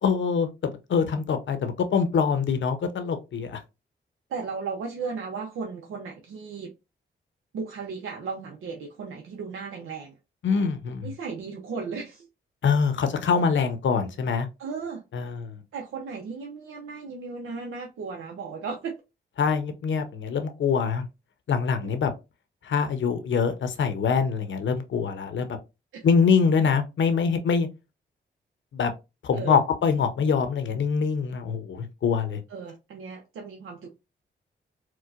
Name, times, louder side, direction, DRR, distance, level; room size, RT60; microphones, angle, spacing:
voice 1, 0.0-3.6 10.4-11.1 12.6-14.5 15.1-15.5 19.4-21.0 21.5-22.1 22.6-25.6 26.0-27.7 28.7-28.9 29.2-32.4, left 6 dB, 70° left, 0.7 m, -24 dB
voice 2, 4.3-6.7 7.5-10.2 11.0-12.3 14.6-15.0 15.7-19.0 21.8-21.9 25.9-26.1 29.3-29.6 32.5-34.0, right 5 dB, 90° right, 0.6 m, -35 dB
4.5 x 2.2 x 2.4 m
cardioid pair, 55°, 20 cm